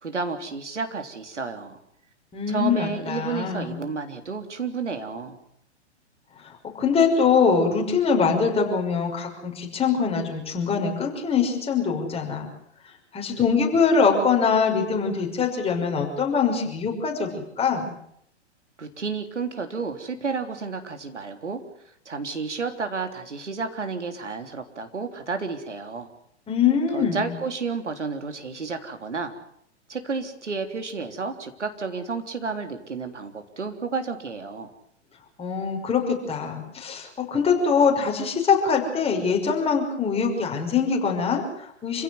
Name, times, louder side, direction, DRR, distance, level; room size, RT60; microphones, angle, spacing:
voice 1, 0.0-1.8 2.5-5.4 18.8-26.1 26.9-29.3 29.9-34.7, right 4 dB, 85° right, 6 dB, 3.6 m, -31 dB
voice 2, 2.3-3.8 6.4-12.5 13.1-17.9 26.5-27.3 35.4-42.0, left 5 dB, 15° left, 1 dB, 6.0 m, -23 dB
27.5 x 16.5 x 9.7 m, 0.73 s
figure-of-eight pair, 110°, 35 cm